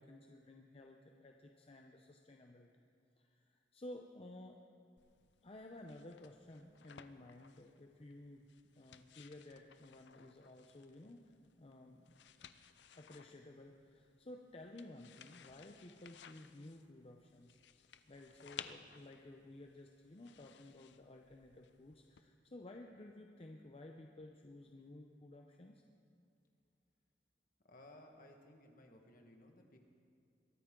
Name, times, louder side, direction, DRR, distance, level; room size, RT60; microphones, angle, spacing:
voice 1, 0.0-2.9 3.2-4.6 5.4-8.5 8.8-11.3 11.6-12.5 12.9-17.6 18.1-25.8, left 1 dB, 35° left, 2 dB, 0.7 m, -55 dB
sound 1, 5.0-22.2, left 8 dB, 80° left, 0.6 m, -59 dB
voice 2, 27.6-29.8, left 1 dB, 50° left, 3 dB, 1.6 m, -59 dB
22.5 x 13.5 x 3.8 m, 2.5 s
head